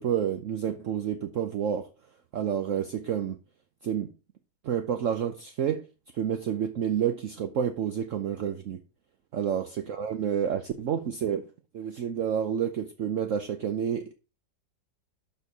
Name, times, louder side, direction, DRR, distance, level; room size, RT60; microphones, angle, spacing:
voice 1, 0.0-1.9 2.3-3.4 3.8-4.1 4.6-5.9 6.1-8.8 9.3-11.4 11.7-14.1, right 8 dB, 60° right, 1.0 m, -29 dB
12.5 x 4.6 x 4.6 m
omnidirectional pair, 1.7 m